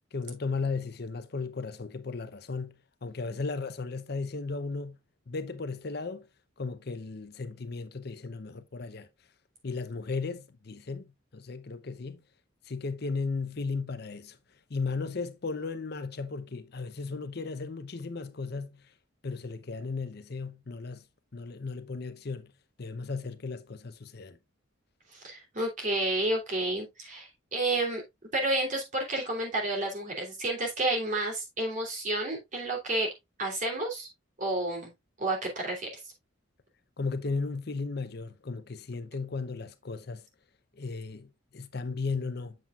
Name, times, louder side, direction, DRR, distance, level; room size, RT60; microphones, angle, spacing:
voice 1, 0.1-5.0 5.3-6.3 6.6-9.1 9.6-12.2 12.6-14.4 14.7-18.9 19.2-21.1 21.3-22.5 22.8-24.4 37.0-40.3 40.7-42.6, left 4 dB, 55° left, 0.7 m, -35 dB
voice 2, 25.1-28.0 28.3-33.1 33.4-34.1 34.4-34.9 35.2-36.1, right 2 dB, 40° right, 3.1 m, -30 dB
7.7 x 7.4 x 2.4 m
head